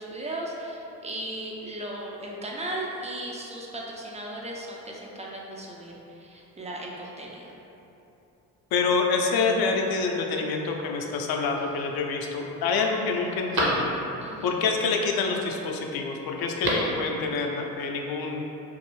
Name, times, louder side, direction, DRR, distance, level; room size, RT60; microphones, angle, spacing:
voice 1, 0.0-7.6 14.2-14.5, right 1 dB, 15° right, -2 dB, 0.3 m, -36 dB
voice 2, 8.7-13.9 14.4-18.4, left 4 dB, 50° left, 1 dB, 0.5 m, -27 dB
Telephone, 11.2-11.8 12.4-12.5 12.8-14.4 16.4-17.0 17.3-17.4, right 1 dB, 45° right, 0.8 m, -31 dB
2.6 x 2.6 x 2.9 m, 3.0 s
hypercardioid pair, 45°, 48 cm